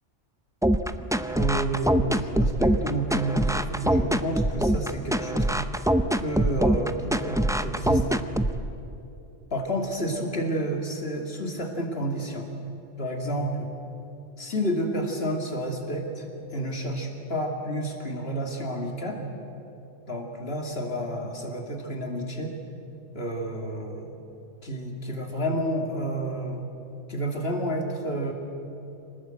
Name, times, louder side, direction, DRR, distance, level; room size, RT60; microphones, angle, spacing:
sound 1, 0.6-8.6, right 1 dB, 5° right, 0.4 m, -23 dB
voice 1, 1.3-5.7 6.2-8.2 9.5-12.5 13.0-13.7 14.4-16.2 16.5-19.3 20.1-22.5 23.1-24.2 24.6-26.6 27.1-28.3, right 1 dB, 50° left, 2 dB, 2.8 m, -30 dB
25.5 x 19.0 x 7.8 m, 2.9 s
omnidirectional pair, 1.3 m